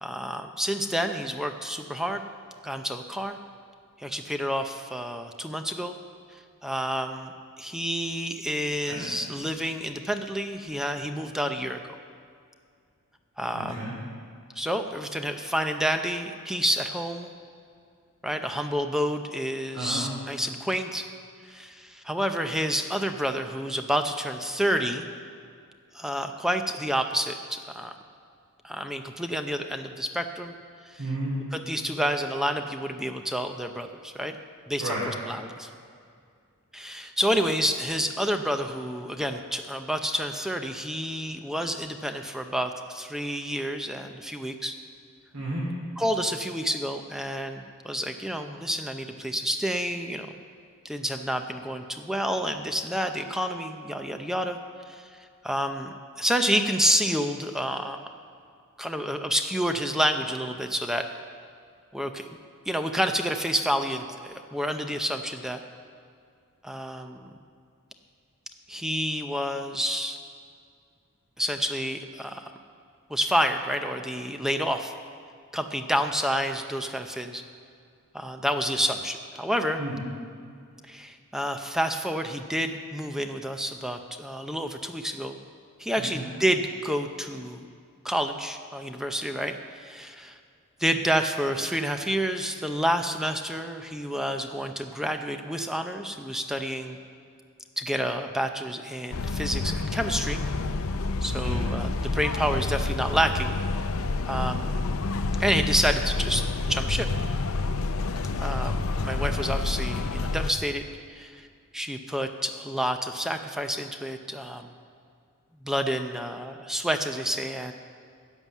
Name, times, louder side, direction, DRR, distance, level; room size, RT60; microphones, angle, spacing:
voice 1, 0.0-2.2 2.6-3.4 4.0-6.0 6.6-11.8 13.4-13.9 14.6-17.3 18.2-21.1 21.5-25.1 25.9-27.9 28.6-30.5 30.9-31.0 31.5-34.4 34.7-35.7 36.7-44.8 46.0-50.3 50.8-54.6 54.9-55.1 55.4-58.0 58.8-61.1 61.9-62.3 62.7-65.6 66.6-67.3 68.7-70.2 71.4-72.5 73.1-74.9 75.5-77.4 78.1-79.8 80.9-85.4 85.8-87.7 88.0-90.4 90.8-97.0 97.8-100.4 101.2-103.6 104.3-104.8 105.4-107.1 108.4-110.8 111.1-111.4 111.7-114.7 115.6-117.7, equal, ahead, 6 dB, 0.5 m, -29 dB
voice 2, 13.5-13.9 19.7-20.1 31.0-31.4 34.8-35.0 45.3-45.7 79.8-80.0 86.0-86.3 101.3-101.7, right 1 dB, 80° right, -6 dB, 3.0 m, -32 dB
sound 1, 99.1-110.5, left 3 dB, 65° left, 0.6 m, -28 dB
11.0 x 9.1 x 7.2 m, 2.3 s
head